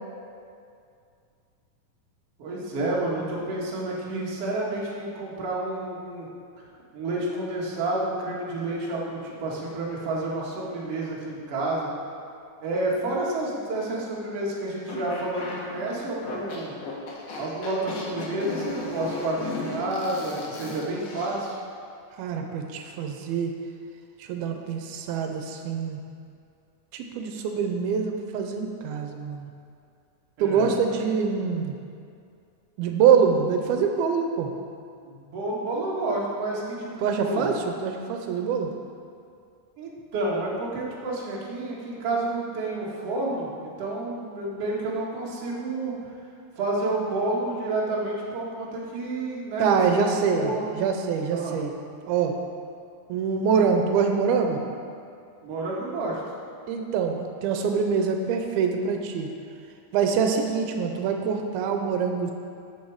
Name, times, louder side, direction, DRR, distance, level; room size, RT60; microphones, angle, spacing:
voice 1, 2.4-6.3 6.9-11.9 12.6-16.7 17.4-21.6 30.4-30.7 35.0-37.5 39.8-46.1 46.6-50.8 51.3-51.6 55.4-56.2, right 2 dB, 50° right, -5 dB, 2.2 m, -30 dB
sound 1, 14.9-21.5, left 2 dB, 65° left, 2.8 m, -35 dB
voice 2, 22.2-23.5 24.2-26.0 26.9-29.5 30.4-31.8 32.8-34.5 37.0-38.7 49.6-51.7 52.1-52.3 53.1-54.6 56.7-59.3 59.9-62.3, right 6 dB, 90° right, 4 dB, 2.5 m, -25 dB
13.0 x 6.8 x 4.7 m, 2.4 s
omnidirectional pair, 4.4 m